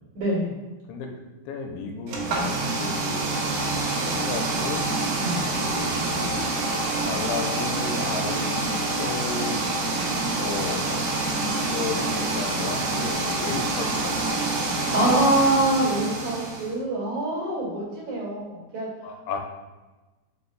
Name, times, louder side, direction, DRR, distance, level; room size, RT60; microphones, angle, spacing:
voice 1, 0.1-0.5 5.2-5.4 14.9-18.9, right 1 dB, 50° right, -8 dB, 2.7 m, -24 dB
voice 2, 1.5-4.8 5.6-6.6 7.0-9.7 10.3-14.3 14.5-14.6 19.0-19.4, left 5 dB, 85° left, 2 dB, 3.0 m, -34 dB
sound 1, 2.1-16.7, right 2 dB, 70° right, 2.6 m, -27 dB
6.9 x 6.7 x 2.3 m, 1.2 s
omnidirectional pair, 5.3 m